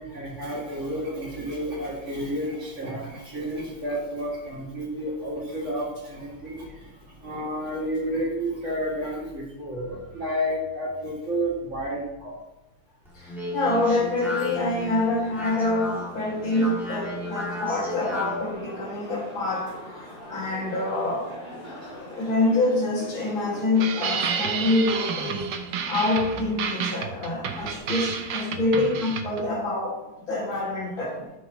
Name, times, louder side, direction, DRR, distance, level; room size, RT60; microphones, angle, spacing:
voice 1, 0.0-12.4 20.2-20.4, equal, 35° right, -5 dB, 2.6 m, -31 dB
Speech, 13.1-18.5, left 2 dB, ahead, 2.4 m, -34 dB
voice 2, 13.2-21.3 22.2-25.5 25.9-30.0 30.3-31.2, left 2 dB, 75° left, -4 dB, 3.0 m, -26 dB
sound 1, 13.7-27.8, left 1 dB, 25° left, 3.4 m, -43 dB
sound 2, 23.8-29.5, right 7 dB, 65° right, 1.4 m, -30 dB
13.0 x 6.2 x 3.1 m, 0.98 s
omnidirectional pair, 2.2 m